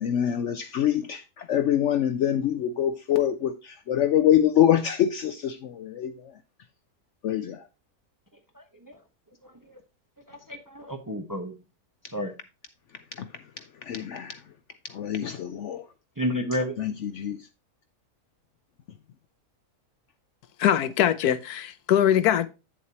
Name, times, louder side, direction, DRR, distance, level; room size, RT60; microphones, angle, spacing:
voice 1, 0.0-6.1 7.2-7.6 13.9-14.4 14.9-15.8 16.8-17.4, left 10 dB, 65° left, 0.7 m, -25 dB
voice 2, 8.5-9.0 9.4-9.8 10.3-11.6 12.1-12.3 16.2-16.8, equal, 20° right, 0.7 m, -31 dB
voice 3, 20.6-22.5, left 10 dB, 85° left, 1.2 m, -22 dB
8.8 x 7.2 x 2.8 m
omnidirectional pair, 1.6 m